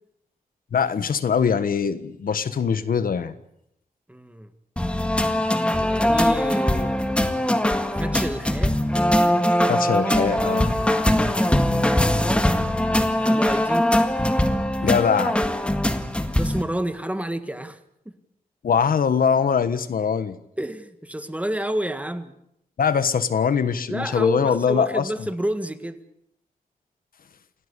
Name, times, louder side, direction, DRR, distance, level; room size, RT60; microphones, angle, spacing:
voice 1, 0.7-3.3 9.7-10.7 14.8-15.4 18.6-20.4 22.8-25.1, left 6 dB, 80° left, 12 dB, 1.5 m, -22 dB
voice 2, 4.1-4.5 5.7-8.8 13.2-13.9 16.3-17.8 18.0-18.1 20.6-22.3 23.9-26.0, right 1 dB, 10° right, 10 dB, 1.7 m, -30 dB
sound 1, 4.8-16.6, left 1 dB, 5° left, 1.8 m, -21 dB
28.5 x 17.5 x 8.4 m, 0.78 s
wide cardioid pair, 125°, 15 cm